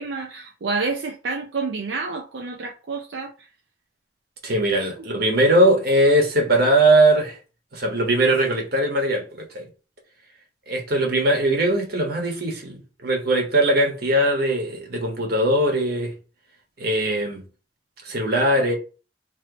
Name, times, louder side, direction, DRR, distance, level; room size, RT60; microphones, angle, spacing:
voice 1, 0.0-3.3, right 4 dB, 85° right, 0.5 m, -29 dB
voice 2, 4.4-7.4 7.7-9.6 10.7-16.1 16.8-17.4 18.0-18.7, right 1 dB, 60° right, 1.3 m, -20 dB
3.0 x 3.0 x 3.9 m
head